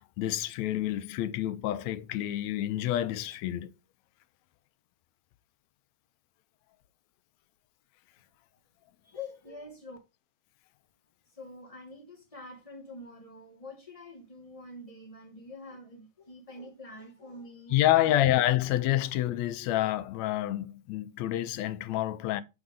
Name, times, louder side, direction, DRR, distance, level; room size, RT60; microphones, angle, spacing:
voice 1, 0.0-3.7 17.7-22.4, left 14 dB, 75° left, 1.9 m, -28 dB
voice 2, 9.0-10.0 11.3-17.8, left 2 dB, 25° left, 0.8 m, -46 dB
6.7 x 6.1 x 3.6 m
omnidirectional pair, 3.3 m